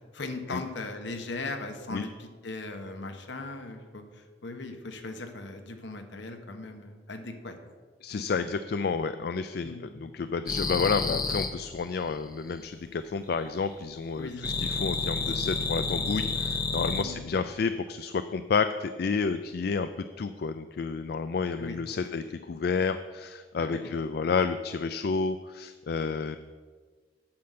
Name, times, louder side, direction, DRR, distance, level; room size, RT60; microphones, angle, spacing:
voice 1, 0.1-7.5 9.6-9.8 14.2-14.5 15.2-15.3 17.0-17.3 21.6-21.8 23.6-23.9, left 3 dB, 70° left, 6 dB, 1.1 m, -38 dB
voice 2, 8.0-19.9 20.2-26.4, left 5 dB, 55° left, 11 dB, 0.4 m, -30 dB
sound 1, 10.5-11.5 14.4-17.0, left 4 dB, 20° left, 0.7 m, -29 dB
8.7 x 5.8 x 7.7 m, 1.5 s
head